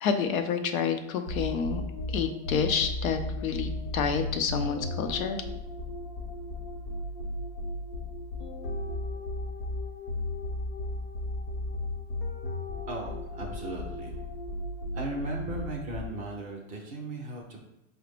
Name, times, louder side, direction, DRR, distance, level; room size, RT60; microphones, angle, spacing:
voice 1, 0.0-1.8 2.1-5.4, left 6 dB, 80° left, 7 dB, 0.7 m, -29 dB
sound 1, 1.3-16.4, left 2 dB, 55° left, 0.9 m, -35 dB
voice 2, 12.9-14.2 14.9-17.6, right 2 dB, 20° right, -1 dB, 0.5 m, -37 dB
4.8 x 2.1 x 3.3 m, 0.85 s
supercardioid pair, 140°, 41 cm